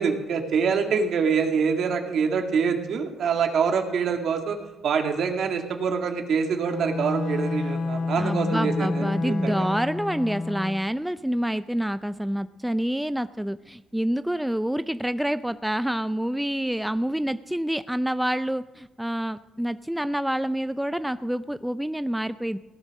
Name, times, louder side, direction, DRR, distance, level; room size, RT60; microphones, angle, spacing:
voice 1, 0.0-4.6 4.8-9.7, right 6 dB, 65° right, 4 dB, 2.0 m, -25 dB
Bowed string instrument, 6.6-11.0, left 3 dB, 65° left, 1.0 m, -29 dB
voice 2, 8.2-22.6, right 1 dB, 5° right, 13 dB, 0.4 m, -27 dB
17.0 x 9.7 x 6.4 m, 1.1 s
cardioid pair, 90°, 0 cm